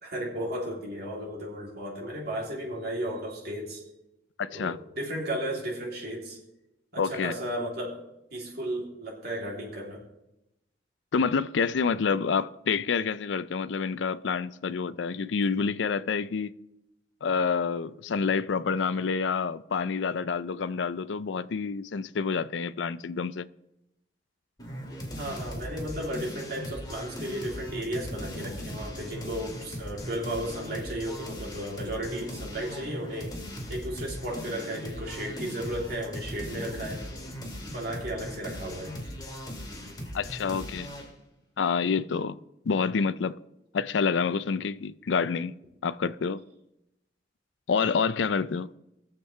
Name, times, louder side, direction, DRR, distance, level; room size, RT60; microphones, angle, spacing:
voice 1, 0.0-3.9 4.5-6.4 6.9-8.0 8.3-10.0 25.2-33.4 33.7-37.1 37.6-39.0, right 1 dB, 60° right, 3.1 m, -34 dB
voice 2, 4.4-4.8 7.0-7.3 11.1-16.5 17.2-23.5 40.1-40.9 41.6-42.4 42.7-43.4 43.7-45.6 45.8-46.4 47.7-48.7, left 5 dB, 80° left, 0.4 m, -28 dB
sound 1, 24.6-41.1, equal, 25° left, 2.3 m, -39 dB
22.0 x 7.4 x 3.3 m
head